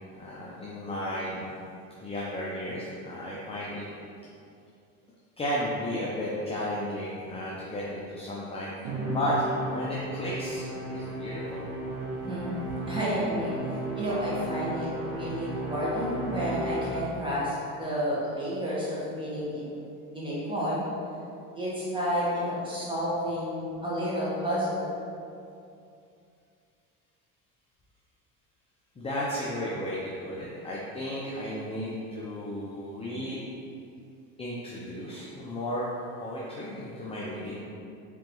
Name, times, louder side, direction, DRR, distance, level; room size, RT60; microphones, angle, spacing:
voice 1, 0.1-1.5 2.0-3.9 5.4-8.7 9.1-10.7 10.9-11.6 29.0-33.4 34.4-35.9 36.2-37.6, equal, 15° left, -6 dB, 0.5 m, -33 dB
Musical instrument, 8.8-17.4, right 1 dB, 70° right, 1.0 m, -34 dB
voice 2, 12.1-13.6 13.9-19.8 20.1-20.9 21.5-24.8, equal, 15° right, -8 dB, 1.4 m, -31 dB
3.8 x 3.4 x 3.0 m, 2.5 s
supercardioid pair, 100°, 37 cm